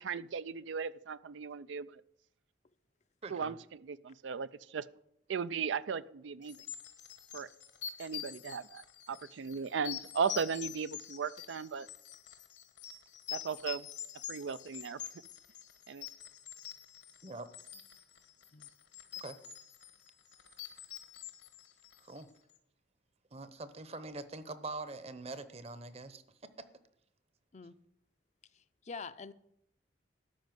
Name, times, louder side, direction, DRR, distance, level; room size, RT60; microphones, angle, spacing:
voice 1, 0.0-2.0 3.3-4.9 5.3-6.6 7.3-7.5 8.0-11.9 13.3-13.9 14.3-15.0 15.9-16.1, right 6 dB, 85° right, 16 dB, 0.4 m, -37 dB
voice 2, 3.2-3.6 17.2-17.5 19.2-19.3 22.0-22.3 23.3-26.2, right 3 dB, 35° right, 13 dB, 0.8 m, -43 dB
sound 1, 6.5-22.3, left 10 dB, 70° left, 1.3 m, -46 dB
voice 3, 28.5-29.3, left 4 dB, 40° left, 12 dB, 0.5 m, -46 dB
13.0 x 5.3 x 9.2 m, 0.75 s
head